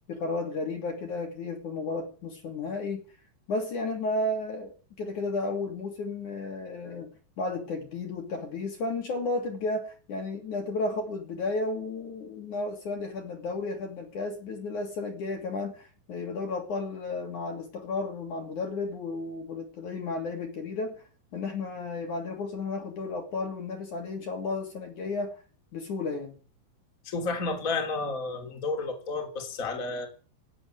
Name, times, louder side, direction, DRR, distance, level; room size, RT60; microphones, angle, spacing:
voice 1, 0.1-3.0 3.5-21.0 21.3-25.4 25.7-26.4, left 3 dB, 45° left, 3 dB, 3.8 m, -33 dB
voice 2, 27.0-30.1, left 3 dB, 20° left, 3 dB, 3.1 m, -31 dB
17.0 x 8.6 x 9.1 m, 0.39 s
omnidirectional pair, 5.1 m